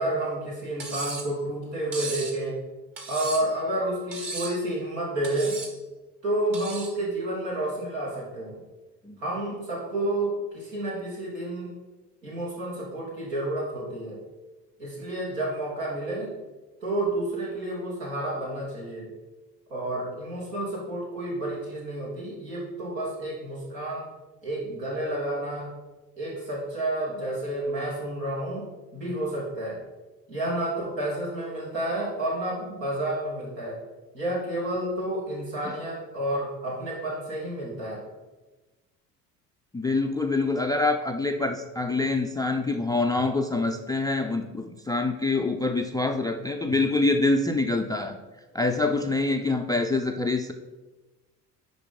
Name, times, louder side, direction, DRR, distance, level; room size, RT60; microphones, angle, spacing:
voice 1, 0.0-2.6 3.1-5.6 6.2-8.6 9.2-11.7 12.2-14.2 14.8-16.3 16.8-19.1 19.7-24.1 24.4-25.7 26.2-28.7 28.9-29.8 30.3-33.8 34.1-38.0, right 1 dB, 80° right, -5 dB, 3.1 m, -30 dB
Cutlery silverware, 0.8-1.3 1.9-2.4 3.0-3.6 4.1-4.6 5.2-5.7 6.5-7.0, right 3 dB, 40° right, 2.1 m, -35 dB
voice 2, 39.7-48.2 48.5-50.5, left 3 dB, 10° left, 7 dB, 0.3 m, -25 dB
10.5 x 4.1 x 5.4 m, 1.2 s
figure-of-eight pair, 55°, 49 cm